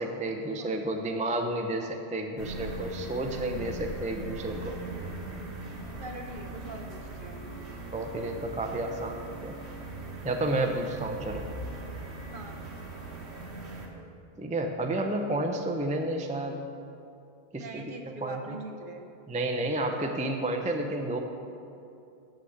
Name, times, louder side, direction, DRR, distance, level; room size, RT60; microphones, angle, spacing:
voice 1, 0.0-4.7 7.9-9.5 10.2-11.5 14.4-16.6 17.5-18.6 19.3-21.2, right 1 dB, 10° right, 3 dB, 0.4 m, -31 dB
sound 1, 2.4-13.9, right 2 dB, 85° right, 1.5 m, -40 dB
voice 2, 6.0-7.5 10.2-10.6 12.3-12.6 17.6-19.1, right 2 dB, 55° right, 3 dB, 1.0 m, -43 dB
7.2 x 6.6 x 7.8 m, 2.7 s
omnidirectional pair, 1.1 m